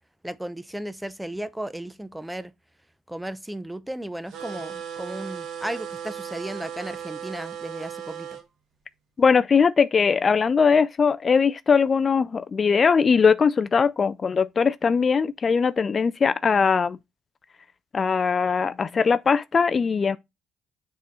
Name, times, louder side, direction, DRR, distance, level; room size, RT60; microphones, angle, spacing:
voice 1, 0.2-2.5 3.1-8.4, right 1 dB, 5° right, 0.6 m, -35 dB
sound 1, 4.3-8.4, right 8 dB, 75° right, 1.5 m, -36 dB
voice 2, 9.2-17.0 17.9-20.2, left 5 dB, 40° left, 0.3 m, -20 dB
7.2 x 3.7 x 4.2 m
supercardioid pair, 75°, 0 cm